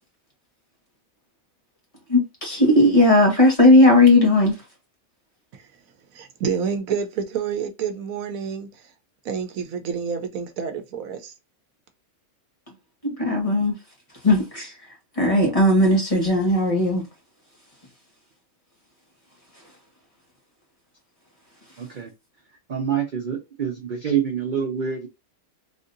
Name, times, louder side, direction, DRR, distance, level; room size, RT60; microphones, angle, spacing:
voice 1, 2.1-4.7 13.0-13.7 14.2-17.0 19.6-19.7 21.7-21.8, left 1 dB, 25° left, 1.3 m, -17 dB
voice 2, 6.4-8.8 9.2-11.3, right 6 dB, 75° right, 1.1 m, -28 dB
voice 3, 21.8-22.1 22.7-25.1, right 8 dB, 45° right, 0.7 m, -26 dB
3.7 x 2.7 x 2.5 m
omnidirectional pair, 1.5 m